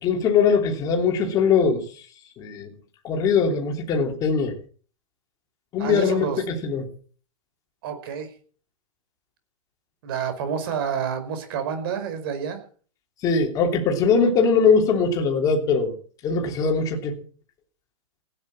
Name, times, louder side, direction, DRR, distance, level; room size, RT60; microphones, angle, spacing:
voice 1, 0.0-1.8 2.4-2.7 3.0-4.5 5.7-6.9 13.2-15.9 16.2-17.2, left 5 dB, 20° left, 3.2 m, -21 dB
voice 2, 5.8-6.4 7.8-8.3 10.0-12.6, right 7 dB, 45° right, 5.0 m, -29 dB
16.0 x 10.0 x 7.6 m
hypercardioid pair, 165°, 18 cm